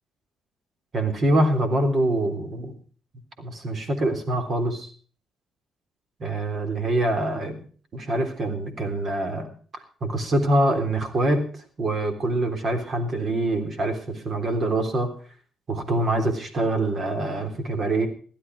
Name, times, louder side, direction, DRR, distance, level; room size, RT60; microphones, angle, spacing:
voice 1, 0.9-2.8 3.4-4.9 6.2-7.6 7.9-9.5 10.0-11.4 11.8-15.1 15.7-18.1, right 1 dB, 50° right, 6 dB, 3.5 m, -24 dB
16.0 x 12.5 x 4.8 m, 0.42 s
cardioid pair, 90°, 0 cm